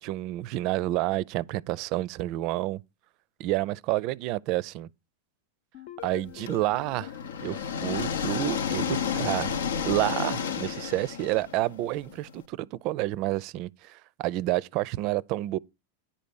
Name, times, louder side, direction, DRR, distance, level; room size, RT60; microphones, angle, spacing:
voice 1, 0.0-2.8 3.4-4.9 6.0-7.1 7.4-15.6, right 16 dB, 50° right, 0.4 m, -29 dB
sound 1, 5.7-8.7, left 13 dB, 60° left, 0.9 m, -47 dB
sound 2, 6.5-12.3, left 7 dB, 80° left, 0.8 m, -31 dB
10.0 x 4.2 x 7.0 m
hypercardioid pair, 110°, 0 cm